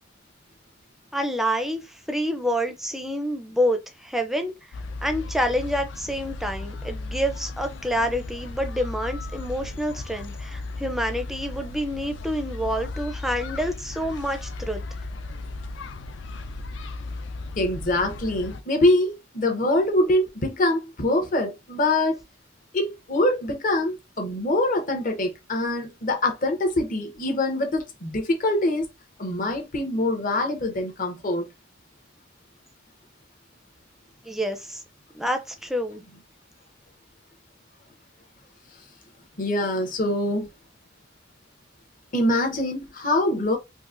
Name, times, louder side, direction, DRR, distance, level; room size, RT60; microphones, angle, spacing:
voice 1, 1.1-4.5 5.0-14.8 34.2-34.8 35.1-36.0, equal, ahead, 0.4 m, -27 dB
sound 1, 4.7-18.6, left 2 dB, 65° left, 0.4 m, -36 dB
voice 2, 17.6-22.2 22.7-28.9 29.2-31.4 39.4-40.5 42.1-43.6, left 1 dB, 45° left, 0.8 m, -24 dB
3.8 x 2.5 x 2.4 m
head